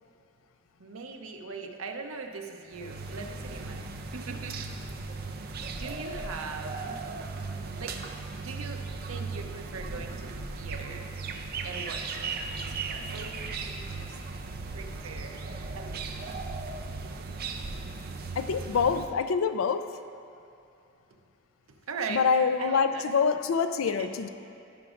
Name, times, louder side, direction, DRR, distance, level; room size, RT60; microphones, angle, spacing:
voice 1, 0.8-3.8 4.1-4.6 5.7-7.0 7.6-7.9 8.4-11.1 11.6-14.2 14.7-15.4 15.8-16.2 21.9-22.2 22.6-23.1 23.9-24.1, right 4 dB, 80° right, 3 dB, 0.8 m, -40 dB
sound 1, 2.7-19.1, right 4 dB, 45° right, 0.5 m, -37 dB
voice 2, 18.4-20.0 22.1-24.3, left 5 dB, 75° left, 10 dB, 0.4 m, -26 dB
16.0 x 6.0 x 2.5 m, 2.6 s
head